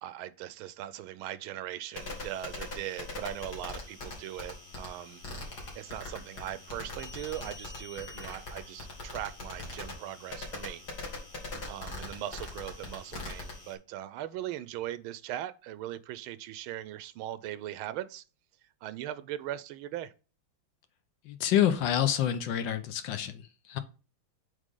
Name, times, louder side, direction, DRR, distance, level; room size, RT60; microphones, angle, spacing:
voice 1, 0.0-5.2 5.5-10.8 11.7-18.2 18.8-20.1, right 12 dB, 85° right, 1.4 m, -39 dB
sound 1, 1.9-13.7, left 2 dB, 50° left, 2.7 m, -42 dB
voice 2, 21.2-23.8, left 10 dB, 70° left, 1.4 m, -28 dB
8.2 x 3.9 x 3.7 m
omnidirectional pair, 2.2 m